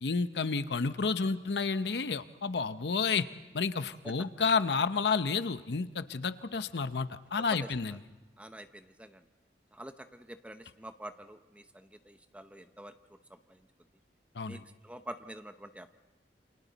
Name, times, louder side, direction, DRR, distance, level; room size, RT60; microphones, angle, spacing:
voice 1, 0.0-3.3 3.5-8.0 14.3-14.6, left 4 dB, 75° left, 12 dB, 0.7 m, -30 dB
voice 2, 7.5-8.0 8.4-9.3 9.7-13.7 14.4-15.9, right 1 dB, 10° right, 9 dB, 0.8 m, -47 dB
28.5 x 27.0 x 4.0 m, 1.1 s
head